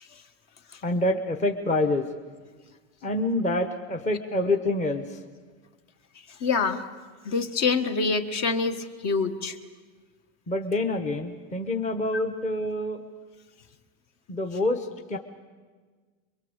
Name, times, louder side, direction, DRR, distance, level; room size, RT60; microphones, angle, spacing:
voice 1, 0.8-2.0 3.0-5.0 10.5-13.0 14.3-14.8 15.1-15.2, left 2 dB, 20° left, 5 dB, 1.1 m, -26 dB
voice 2, 6.4-6.8 7.2-9.6 12.1-12.2, left 4 dB, 40° left, 7 dB, 1.6 m, -26 dB
25.5 x 23.0 x 8.1 m, 1.5 s
supercardioid pair, 140°, 39 cm